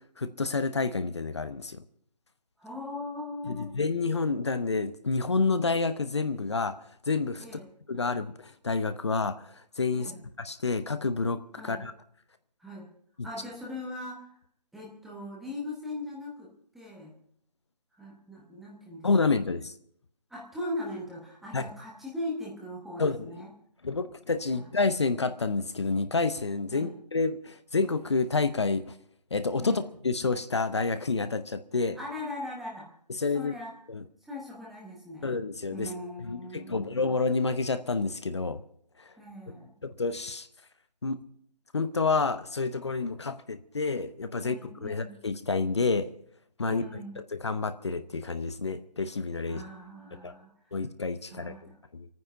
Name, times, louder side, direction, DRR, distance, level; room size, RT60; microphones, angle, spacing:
voice 1, 0.2-1.8 3.5-6.8 7.1-7.5 7.9-8.3 8.6-9.4 9.8-10.1 10.4-11.9 19.0-19.7 21.5-21.6 23.0-23.3 23.8-28.9 29.3-32.0 33.2-33.5 33.9-34.0 35.2-35.9 36.2-38.6 39.8-40.5 41.0-41.2 41.7-46.1 46.6-46.8 47.4-49.6 50.2-50.3 50.7-51.5 51.9-52.1, left 4 dB, 40° left, 12 dB, 0.8 m, -29 dB
voice 2, 2.6-3.7 7.4-7.7 9.9-10.2 11.6-11.9 12.6-12.9 13.2-14.4 14.7-17.1 17.9-19.1 20.3-23.5 24.5-24.7 26.7-26.9 29.6-29.9 31.9-32.9 33.3-33.7 34.2-35.3 35.7-37.0 39.2-39.7 44.3-45.2 46.6-47.2 49.4-50.7 51.2-51.8, left 1 dB, ahead, -4 dB, 0.9 m, -40 dB
26.0 x 9.4 x 5.5 m, 0.63 s
figure-of-eight pair, 160°, 21 cm